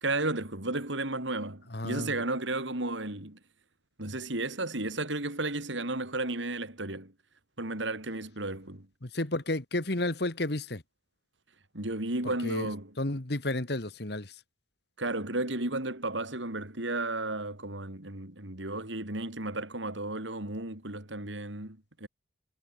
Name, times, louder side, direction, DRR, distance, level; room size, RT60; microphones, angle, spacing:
voice 1, 0.0-3.4 4.0-7.1 7.6-8.9 11.7-12.9 15.0-22.1, right 2 dB, 75° right, 4.0 m, -33 dB
voice 2, 1.7-2.1 9.0-10.8 12.4-12.7 13.0-14.4, left 2 dB, 55° left, 1.8 m, -32 dB
head